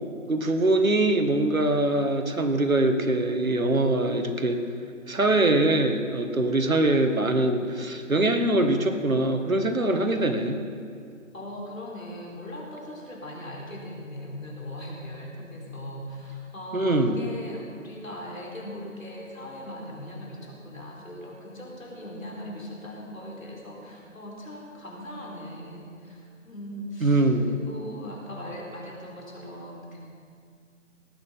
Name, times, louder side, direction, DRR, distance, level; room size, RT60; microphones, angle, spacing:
voice 1, 0.3-4.6 5.1-10.6 16.7-17.2 27.0-27.5, right 2 dB, 85° right, 6 dB, 1.8 m, -23 dB
voice 2, 11.3-30.0, left 1 dB, 75° left, -2 dB, 4.5 m, -39 dB
18.5 x 9.2 x 5.8 m, 2.3 s
figure-of-eight pair, 160°, 40 cm